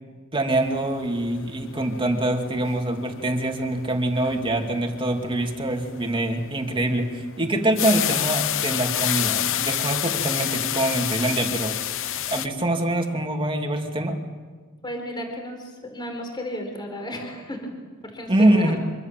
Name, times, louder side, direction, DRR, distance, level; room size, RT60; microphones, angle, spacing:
voice 1, 0.3-11.8 12.3-14.2 18.3-18.8, right 1 dB, 25° right, 3 dB, 2.7 m, -24 dB
sound 1, 0.6-12.5, left 11 dB, 65° left, 0.9 m, -29 dB
voice 2, 14.8-17.7 18.0-18.8, equal, 20° left, 3 dB, 4.2 m, -33 dB
25.5 x 24.0 x 7.5 m, 1.5 s
head